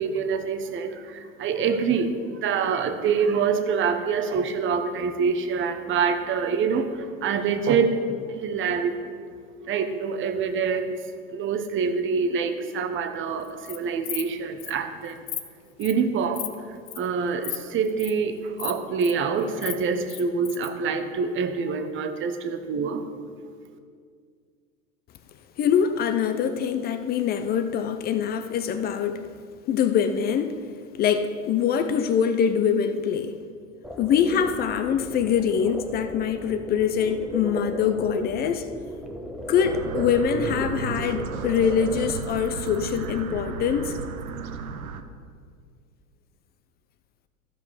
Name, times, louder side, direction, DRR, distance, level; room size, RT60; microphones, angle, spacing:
voice 1, 0.0-9.0 9.6-15.3 15.8-16.5 17.0-23.1, right 5 dB, 30° right, 8 dB, 0.9 m, -26 dB
Insect, 13.4-13.8 14.0-14.3 14.6-14.7 15.1-15.4 15.8-16.0 16.3-16.5 16.9-17.1 17.4-17.6 17.8-18.1 18.6-19.1 19.4-20.7, left 13 dB, 55° left, 1.0 m, -33 dB
voice 2, 25.6-29.3 29.7-30.6 30.9-33.4 34.0-38.7 39.5-44.0, left 7 dB, 25° left, 9 dB, 0.4 m, -24 dB
sound 1, 33.8-42.1, equal, ahead, 0.9 m, -35 dB
sound 2, 39.6-45.0, right 5 dB, 85° right, 0.8 m, -34 dB
14.5 x 5.2 x 4.8 m, 2.1 s
hypercardioid pair, 95°, 42 cm